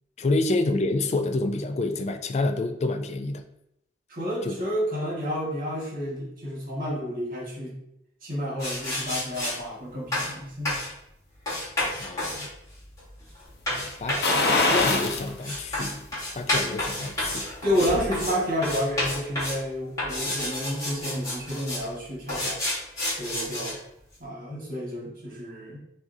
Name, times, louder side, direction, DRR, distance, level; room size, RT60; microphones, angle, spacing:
voice 1, 0.2-3.4 4.4-4.5 12.0-12.5 13.7-17.5 24.5-24.6, left 2 dB, 40° left, 7 dB, 0.3 m, -28 dB
voice 2, 4.1-7.8 8.2-10.8 17.6-22.6 23.2-23.8 24.2-25.8, equal, 50° right, -4 dB, 1.5 m, -30 dB
sound 1, 8.6-9.6 10.1-10.3 10.7-10.9 11.5-18.4 18.6-19.6 20.0-21.9 22.3-23.7, left 1 dB, 20° left, 1.4 m, -30 dB
sound 2, 14.2-15.3 15.7-15.8 17.3-18.1 18.4-18.5, left 2 dB, 70° left, 0.7 m, -23 dB
5.9 x 2.5 x 2.7 m, 0.79 s
head